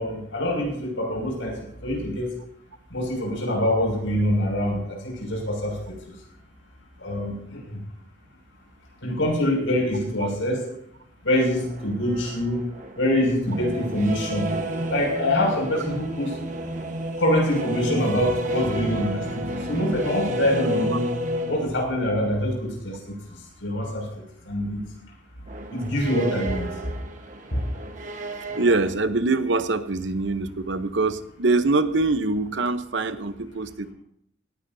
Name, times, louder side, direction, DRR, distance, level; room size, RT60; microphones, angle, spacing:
voice 1, 0.0-2.3 2.9-5.8 6.1-6.2 7.0-7.8 9.0-10.6 11.2-12.6 13.0-14.5 14.9-16.4 17.2-21.1 21.5-24.1 24.4-24.8 25.7-26.7 27.5-27.6, left 1 dB, 85° left, 0 dB, 6.2 m, -25 dB
sound 1, 11.3-22.3 25.5-28.9, right 1 dB, 40° right, 1.3 m, -31 dB
voice 2, 28.6-33.9, right 3 dB, 70° right, 10 dB, 0.9 m, -24 dB
18.0 x 15.5 x 2.8 m, 0.71 s
head